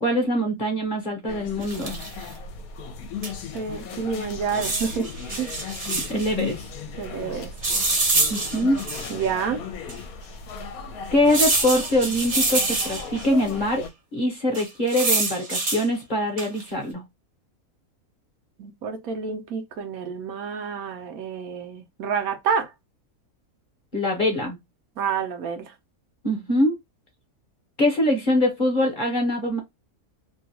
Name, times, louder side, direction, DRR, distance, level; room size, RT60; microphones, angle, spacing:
voice 1, 0.0-2.0 5.8-6.6 8.3-8.8 11.1-13.8 14.1-17.0 23.9-24.6 26.2-26.8 27.8-29.6, left 1 dB, 40° left, 0.9 m, -23 dB
sound 1, 1.3-13.9, left 5 dB, 75° left, 1.1 m, -36 dB
sound 2, 1.6-2.2 3.2-3.3 3.6-3.7 4.5-6.3 7.6-9.3 9.9-10.0 11.3-13.3 14.5-15.9 16.4-16.7, right 3 dB, 35° right, 0.9 m, -26 dB
voice 2, 3.5-5.1 5.4-5.5 7.0-7.5 9.1-9.6 18.6-22.7 25.0-25.7, right 6 dB, 75° right, 1.1 m, -28 dB
3.0 x 2.3 x 2.8 m
omnidirectional pair, 1.6 m